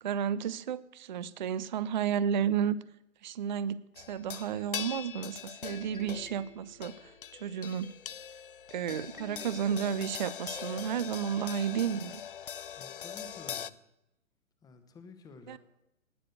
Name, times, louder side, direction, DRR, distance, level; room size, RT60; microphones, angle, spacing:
voice 1, 0.0-2.8 3.2-7.1 7.4-7.9 8.7-12.2 15.5-15.6, right 8 dB, 35° right, 0.4 m, -32 dB
sound 1, 4.0-13.7, left 9 dB, 45° left, 0.4 m, -42 dB
sound 2, 5.7-10.9, left 3 dB, 85° left, 2.0 m, -50 dB
voice 2, 12.8-13.8 14.6-15.6, left 3 dB, 10° left, 1.0 m, -51 dB
18.5 x 6.6 x 6.6 m
figure-of-eight pair, 120°, 41 cm